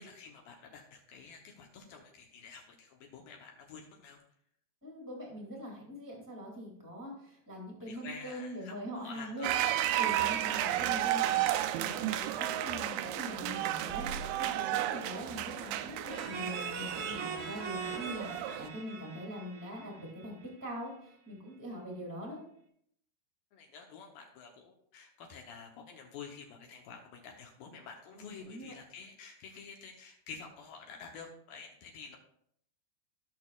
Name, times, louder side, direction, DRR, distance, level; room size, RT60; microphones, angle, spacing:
voice 1, 0.0-4.2 7.9-8.7 9.0-9.5 10.4-10.8 23.5-32.2, left 5 dB, 75° left, 2 dB, 2.3 m, -49 dB
voice 2, 4.8-9.5 9.9-11.4 11.8-22.4 28.1-28.7, equal, 10° right, -2 dB, 0.9 m, -43 dB
sound 1, 9.4-18.7, right 13 dB, 85° right, 2.2 m, -33 dB
sound 2, 16.1-20.7, right 5 dB, 60° right, 1.9 m, -41 dB
15.0 x 6.5 x 2.4 m, 0.70 s
omnidirectional pair, 4.8 m